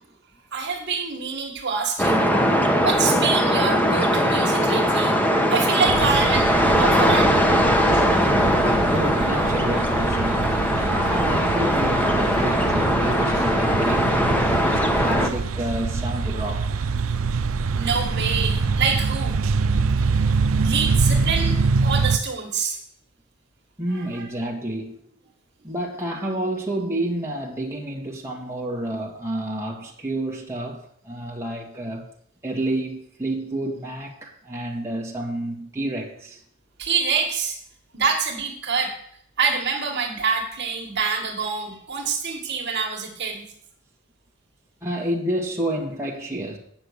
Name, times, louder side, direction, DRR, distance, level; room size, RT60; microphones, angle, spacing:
voice 1, 0.5-2.4 2.8-5.2 5.5-7.3 8.7-8.9 14.1-14.6 17.7-19.4 20.6-22.8 23.9-24.3 36.8-37.6 37.9-39.0 39.4-43.4, right 5 dB, 55° right, 2.0 m, -26 dB
sound 1, 2.0-15.3, equal, 10° left, 1.1 m, -20 dB
sound 2, 5.8-22.2, right 4 dB, 70° right, 0.5 m, -25 dB
voice 2, 8.9-14.2 14.6-16.9 23.8-25.0 25.6-32.0 32.4-36.4 44.8-46.6, right 1 dB, 15° right, 1.9 m, -29 dB
9.0 x 6.8 x 8.1 m
head